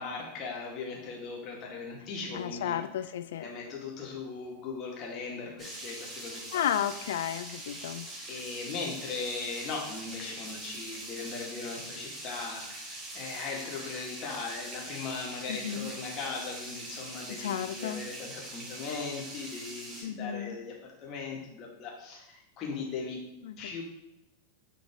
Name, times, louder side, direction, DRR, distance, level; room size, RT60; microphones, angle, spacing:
voice 1, 0.0-2.8 3.4-6.6 8.3-20.7 21.0-23.2 23.6-23.8, left 4 dB, 35° left, -2 dB, 2.1 m, -39 dB
voice 2, 2.3-3.4 6.5-8.1 15.5-15.9 17.4-18.0 20.0-20.5 23.4-23.6, left 10 dB, 60° left, 11 dB, 0.5 m, -33 dB
sound 1, 5.6-20.0, right 1 dB, 20° right, 1.8 m, -43 dB
9.3 x 3.9 x 3.7 m, 0.90 s
figure-of-eight pair, 90°, 0 cm